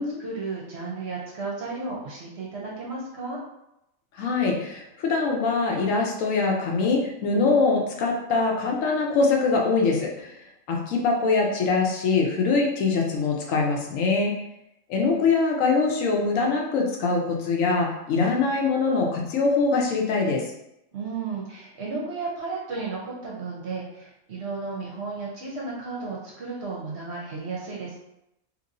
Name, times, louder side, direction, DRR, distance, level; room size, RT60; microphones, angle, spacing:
voice 1, 0.0-3.4 20.9-28.0, right 4 dB, 55° right, -4 dB, 0.9 m, -33 dB
voice 2, 4.2-10.3 10.7-14.3 14.9-20.4, left 4 dB, 70° left, 0 dB, 1.0 m, -23 dB
2.9 x 2.9 x 2.6 m, 0.85 s
omnidirectional pair, 1.4 m